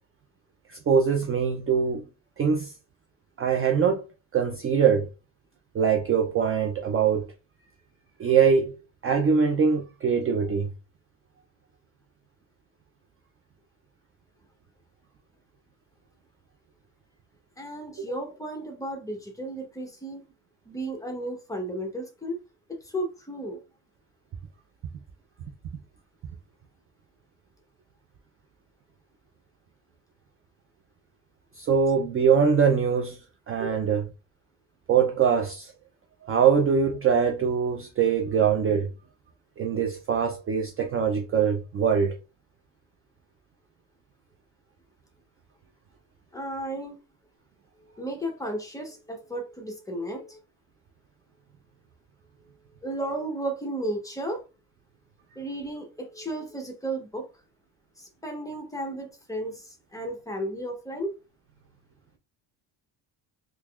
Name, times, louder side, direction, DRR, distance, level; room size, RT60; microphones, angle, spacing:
voice 1, 0.7-2.0 2.4-2.7 3.4-4.1 4.3-5.1 5.7-7.3 8.2-8.7 9.0-10.7 31.6-33.2 33.5-34.1 34.9-35.7 36.2-38.9 39.6-42.2, right 6 dB, 30° right, 0.4 m, -23 dB
voice 2, 17.6-20.2 20.7-22.4 22.8-23.6 46.3-47.0 48.0-50.4 52.8-54.4 55.4-57.3 58.0-61.1, right 1 dB, 10° left, 0.8 m, -34 dB
3.4 x 3.1 x 2.3 m
cardioid pair, 135°, 44 cm